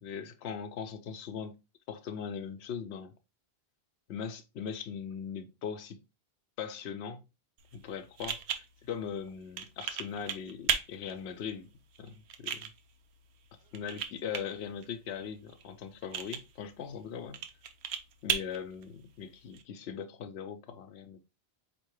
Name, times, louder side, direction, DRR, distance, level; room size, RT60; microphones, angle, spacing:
voice 1, 0.0-1.6 1.9-3.1 4.1-6.0 6.6-7.2 7.7-11.7 12.0-12.7 13.7-17.4 18.2-21.2, left 7 dB, 80° left, 0.8 m, -40 dB
sound 1, 7.6-19.6, right 8 dB, 85° right, 0.9 m, -39 dB
4.4 x 2.8 x 3.0 m
omnidirectional pair, 1.1 m